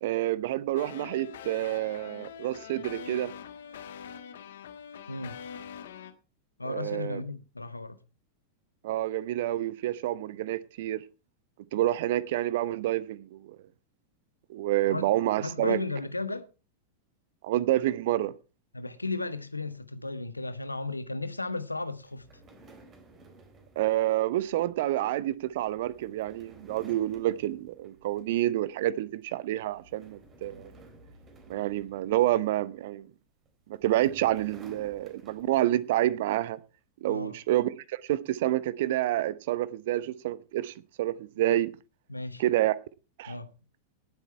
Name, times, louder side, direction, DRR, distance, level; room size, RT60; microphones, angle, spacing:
voice 1, 0.0-3.3 6.7-7.2 8.8-11.0 11.7-13.6 14.5-15.8 17.4-18.3 23.8-30.7 31.5-33.1 33.7-36.6 37.0-41.7 42.4-42.8 43.2-43.3, right 14 dB, 55° right, 0.9 m, -28 dB
sound 1, 0.8-6.1, left 8 dB, 60° left, 1.5 m, -44 dB
voice 2, 6.6-8.0 14.9-15.0 15.4-16.5 18.7-22.3 37.1-37.4 42.1-42.4 43.3-43.5, left 3 dB, 85° left, 1.1 m, -34 dB
sound 2, 22.0-28.6 28.9-29.2 29.6-32.6 33.4-35.9, right 2 dB, 25° right, 3.7 m, -54 dB
18.0 x 8.3 x 4.5 m
figure-of-eight pair, 90°, 0 cm